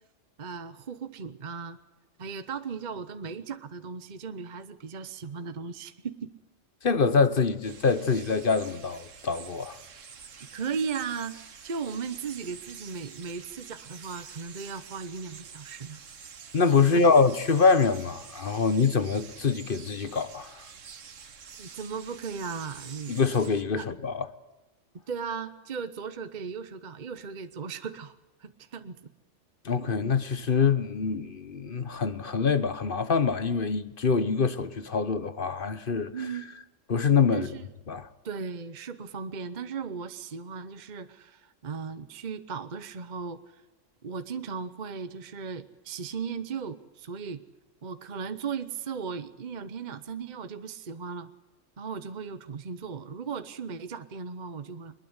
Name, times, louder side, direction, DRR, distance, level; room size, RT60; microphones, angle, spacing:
voice 1, 0.4-1.8 2.2-6.3 10.5-11.4 11.6-16.0 16.9-17.0 21.6-23.1 23.8-23.9 25.1-29.1 36.1-36.5 37.3-37.7 38.2-43.6 44.0-47.4 47.8-51.3 51.8-54.9, right 6 dB, 40° right, 1.0 m, -37 dB
voice 2, 6.8-9.8 16.5-20.6 23.1-24.3 29.6-36.1 36.9-37.5 37.9-38.1, left 5 dB, 45° left, 1.2 m, -25 dB
sound 1, 7.6-23.6, right 6 dB, 75° right, 1.6 m, -47 dB
21.5 x 21.0 x 8.1 m
omnidirectional pair, 1.3 m